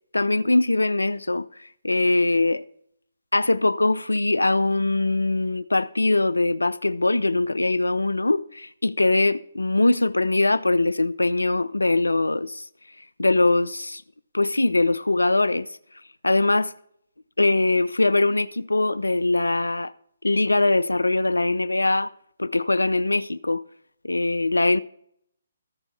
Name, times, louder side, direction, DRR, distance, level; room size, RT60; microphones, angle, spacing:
voice 1, 0.1-2.6 3.3-12.7 13.0-14.0 14.3-15.8 16.2-16.7 17.4-19.9 20.2-22.1 22.4-23.6 24.0-24.8, left 2 dB, 80° left, 0.3 m, -22 dB
14.0 x 5.2 x 4.2 m
figure-of-eight pair, 140°, 0 cm